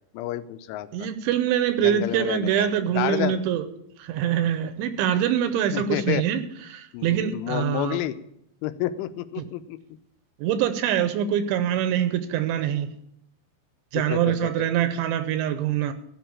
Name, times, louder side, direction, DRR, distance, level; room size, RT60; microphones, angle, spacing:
voice 1, 0.1-1.1 1.8-2.7 2.9-3.4 5.7-6.3 6.9-8.2 8.6-9.8 13.9-14.5, left 13 dB, 85° left, 12 dB, 3.1 m, -30 dB
voice 2, 0.9-3.6 4.0-6.4 6.7-8.0 10.4-12.9 13.9-15.9, right 10 dB, 80° right, 11 dB, 3.0 m, -24 dB
15.5 x 5.6 x 8.6 m, 0.75 s
omnidirectional pair, 5.5 m